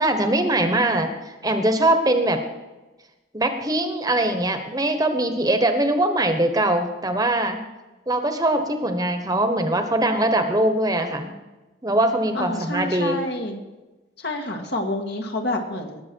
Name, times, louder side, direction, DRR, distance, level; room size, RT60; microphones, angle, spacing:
voice 1, 0.0-2.4 3.3-7.6 8.1-11.4 11.8-13.2, right 1 dB, 20° right, 6 dB, 1.2 m, -22 dB
voice 2, 12.3-13.6 14.2-16.0, left 1 dB, 60° left, 3 dB, 1.8 m, -28 dB
19.5 x 7.6 x 4.6 m, 1.1 s
head